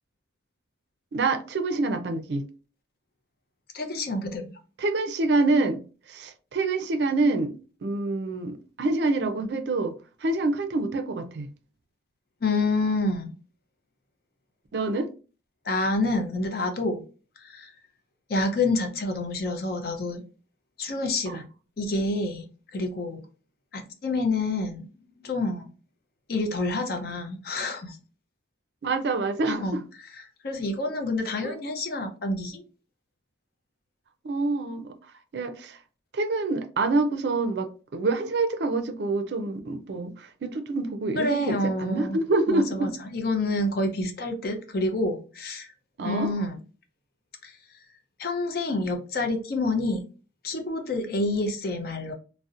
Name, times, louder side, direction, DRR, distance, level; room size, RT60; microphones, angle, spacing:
voice 1, 1.1-2.4 4.8-5.8 6.1-9.9 10.2-11.5 14.7-15.1 21.3-21.4 28.8-29.8 31.4-31.5 34.2-34.9 35.3-35.8 36.1-42.9 46.0-46.3, right 3 dB, 65° right, 0.4 m, -26 dB
voice 2, 3.7-4.6 12.4-13.3 15.7-17.0 17.4-17.7 18.3-20.2 20.8-21.5 21.8-23.2 23.7-24.9 25.2-25.7 26.3-28.0 29.5-29.8 30.1-32.6 41.2-42.2 42.5-45.7 46.0-46.6 47.4-47.6 48.2-50.0 50.4-52.1, left 2 dB, 55° left, 0.5 m, -28 dB
2.7 x 2.0 x 2.4 m
head